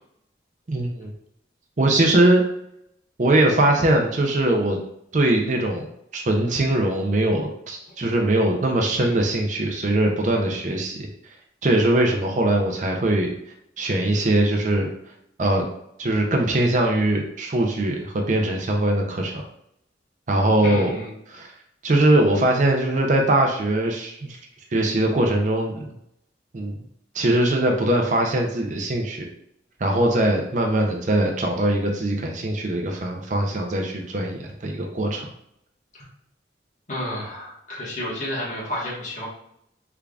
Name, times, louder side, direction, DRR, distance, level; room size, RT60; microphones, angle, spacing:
voice 1, 0.7-1.1 1.8-2.4 3.2-4.8 5.1-5.8 6.1-11.1 11.6-13.3 13.8-14.9 15.4-15.7 16.0-19.4 20.3-21.0 21.3-21.5 21.8-24.4 24.7-25.9 26.5-26.8 27.1-29.2 29.8-35.3, right 1 dB, 45° right, 1 dB, 0.5 m, -21 dB
voice 2, 20.6-21.1 35.9-36.1 36.9-39.3, left 1 dB, 45° left, -6 dB, 1.3 m, -31 dB
3.6 x 3.4 x 2.4 m, 0.75 s
head